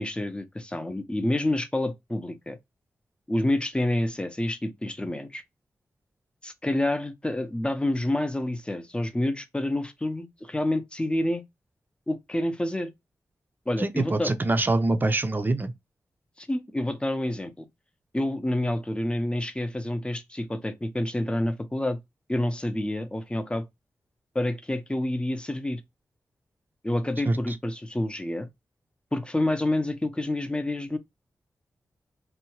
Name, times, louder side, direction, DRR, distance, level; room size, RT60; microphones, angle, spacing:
voice 1, 0.0-2.6 3.3-5.4 6.4-11.4 12.1-12.9 13.7-14.3 16.4-17.7 18.1-22.0 22.3-23.6 24.3-25.8 26.8-28.5 29.1-31.0, left 1 dB, 15° left, 0.6 m, -28 dB
voice 2, 13.8-15.7 27.3-27.4, right 2 dB, 30° right, 0.5 m, -24 dB
2.7 x 2.2 x 2.9 m
cardioid pair, 55°, 7 cm